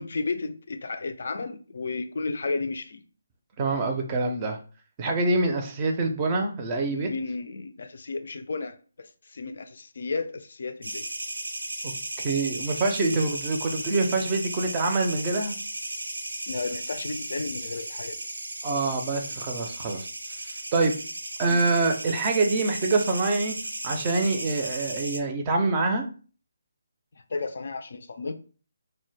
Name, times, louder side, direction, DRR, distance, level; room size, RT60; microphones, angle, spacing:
voice 1, 0.0-3.0 6.9-11.1 16.5-18.2 21.4-21.7 27.1-28.3, left 3 dB, 60° left, 8 dB, 0.3 m, -33 dB
voice 2, 3.6-4.6 5.0-7.1 11.8-11.9 12.2-15.5 18.6-20.1 20.7-20.9 21.4-23.5 23.8-26.0, right 3 dB, 25° right, 3 dB, 0.4 m, -25 dB
sound 1, 10.8-25.2, right 1 dB, 80° right, 0.5 m, -35 dB
2.1 x 2.1 x 3.2 m, 0.39 s
figure-of-eight pair, 150°, 0 cm